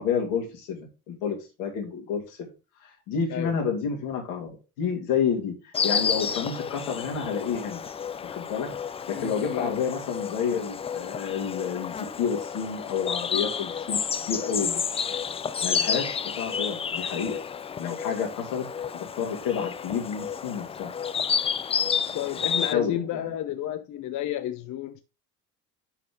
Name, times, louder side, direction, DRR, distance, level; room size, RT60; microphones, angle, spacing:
voice 1, 0.0-2.4 2.8-7.8 8.2-8.7 9.1-14.0 14.3-15.0 15.6-17.4 17.8-18.7 19.2-20.9 22.7-23.2, left 6 dB, 70° left, 2.9 m, -30 dB
Insect, 5.7-22.7, left 7 dB, 15° left, 0.4 m, -30 dB
voice 2, 9.1-9.8 22.1-25.0, left 12 dB, 40° left, 0.7 m, -31 dB
10.0 x 4.2 x 3.9 m
hypercardioid pair, 65°, 44 cm